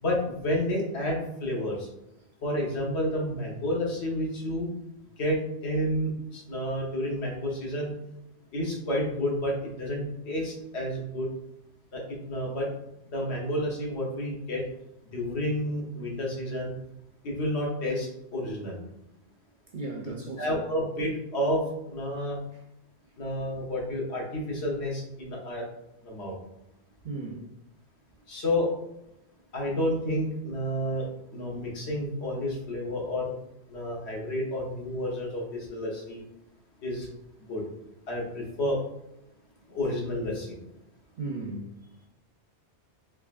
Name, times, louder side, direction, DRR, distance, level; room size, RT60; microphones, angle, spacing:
voice 1, 0.0-1.9 2.4-4.7 5.2-7.9 8.5-11.3 11.9-12.7 13.1-14.6 15.1-16.7 17.2-18.8 20.4-21.6 21.9-22.4 23.2-25.6 26.0-26.3 28.3-28.7 29.5-31.1 31.3-33.3 33.7-36.2 36.8-37.1 37.5-37.6 38.1-38.8 39.7-40.5, left 1 dB, 70° left, -2 dB, 1.2 m, -30 dB
voice 2, 19.7-20.5 27.0-27.4 41.2-41.7, right 3 dB, 55° right, 0 dB, 0.6 m, -35 dB
3.7 x 3.4 x 2.4 m, 0.85 s
omnidirectional pair, 1.2 m